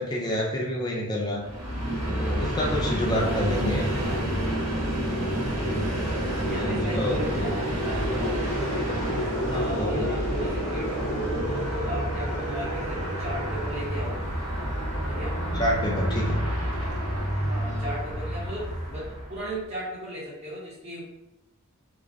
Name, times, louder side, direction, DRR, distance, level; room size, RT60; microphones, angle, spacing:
voice 1, 0.0-1.4 2.0-3.9 5.4-5.7 6.5-7.3 9.4-10.1 15.6-16.4, equal, 20° left, -2 dB, 0.4 m, -28 dB
Train, 1.4-19.5, equal, 90° right, 0.7 m, -28 dB
voice 2, 3.2-4.5 5.2-5.9 6.4-8.4 9.4-14.2 15.1-15.4 17.5-21.0, right 1 dB, 30° right, -6 dB, 0.7 m, -36 dB
2.5 x 2.0 x 2.4 m, 0.91 s
head